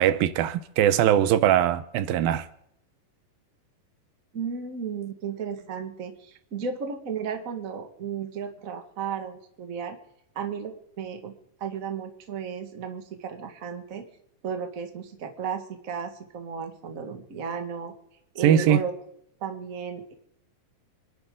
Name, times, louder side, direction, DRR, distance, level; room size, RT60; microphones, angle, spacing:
voice 1, 0.0-2.5 18.4-18.8, right 10 dB, 85° right, 2.6 m, -21 dB
voice 2, 4.3-10.0 10.3-11.3 11.6-14.0 14.4-17.9 18.3-18.9 19.4-20.1, right 6 dB, 35° right, 1.4 m, -34 dB
26.5 x 12.0 x 3.8 m
omnidirectional pair, 4.1 m